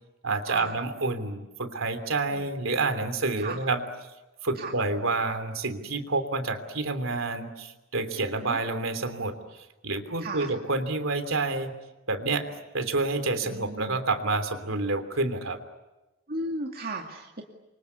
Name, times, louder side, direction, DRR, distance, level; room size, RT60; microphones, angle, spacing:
voice 1, 0.2-3.8 4.4-11.7 12.1-15.6, right 3 dB, 90° right, 9 dB, 3.2 m, -29 dB
voice 2, 10.2-10.5 13.4-14.0 16.3-17.4, right 2 dB, 50° right, 1 dB, 2.4 m, -35 dB
28.5 x 25.0 x 8.3 m, 1.0 s
head